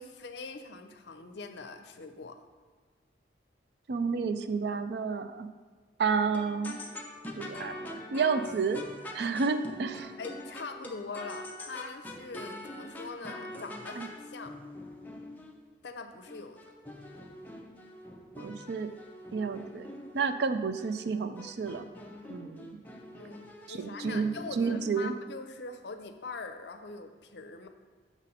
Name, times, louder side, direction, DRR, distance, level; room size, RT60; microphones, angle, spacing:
voice 1, 0.0-2.4 10.2-14.5 15.8-16.6 23.2-27.7, left 4 dB, 70° left, 7 dB, 0.6 m, -43 dB
voice 2, 3.9-5.5 6.0-6.8 7.4-8.8 9.1-10.1 14.0-14.1 18.4-18.9 19.3-19.9 20.1-21.9 22.3-22.8 23.7-24.3 24.6-25.1, right 5 dB, 60° right, 10 dB, 0.4 m, -30 dB
sound 1, 6.1-15.6 16.3-20.3 20.8-21.1 21.4-25.0, left 1 dB, 10° left, 0.5 m, -44 dB
6.0 x 4.1 x 5.3 m, 1.5 s
head